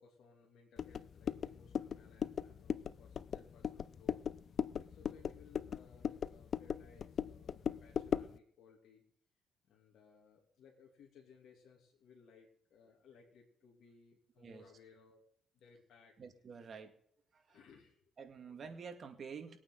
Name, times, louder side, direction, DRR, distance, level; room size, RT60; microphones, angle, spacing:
voice 1, 0.0-4.2 4.8-9.0 9.6-15.2 15.5-16.2 17.5-18.0, left 5 dB, 75° left, -2 dB, 2.7 m, -62 dB
sound 1, 0.8-8.4, left 7 dB, 55° left, 0.5 m, -39 dB
voice 2, 16.2-17.0 17.3-17.6 18.2-19.6, right 6 dB, 45° right, 5 dB, 2.1 m, -49 dB
21.0 x 8.7 x 4.0 m, 0.64 s
cardioid pair, 90°, 0 cm